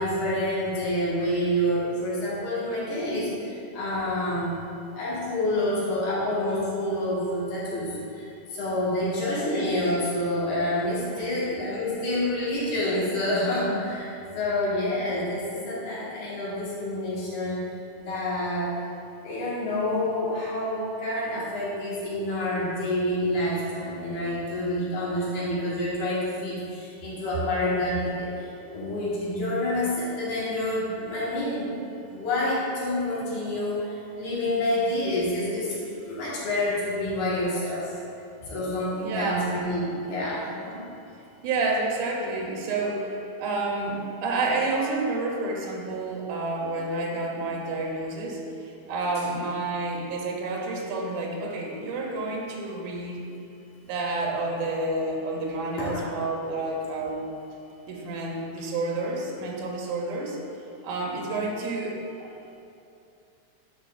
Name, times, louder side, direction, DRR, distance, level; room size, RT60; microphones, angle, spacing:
voice 1, 0.0-4.6 4.9-17.6 18.0-18.7 19.2-28.3 28.7-31.7 32.1-37.9 38.4-40.8 55.8-56.0, left 1 dB, 90° left, -8 dB, 3.0 m, -28 dB
voice 2, 39.0-39.6 41.4-53.2 53.8-57.3 57.9-60.4 60.8-62.3, right 2 dB, 85° right, -1 dB, 2.3 m, -29 dB
9.5 x 5.4 x 2.4 m, 2.7 s
omnidirectional pair, 3.4 m